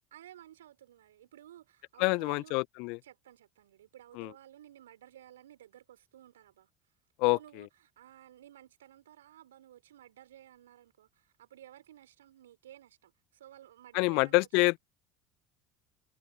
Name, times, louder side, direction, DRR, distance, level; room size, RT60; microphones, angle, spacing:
voice 1, 0.1-2.6 3.0-6.7 7.3-14.8, right 12 dB, 75° right, 4.1 m, -55 dB
voice 2, 2.0-3.0 4.2-4.3 7.2-7.4 13.9-14.8, left 28 dB, 60° left, 0.6 m, -26 dB
figure-of-eight pair, 65°, 0 cm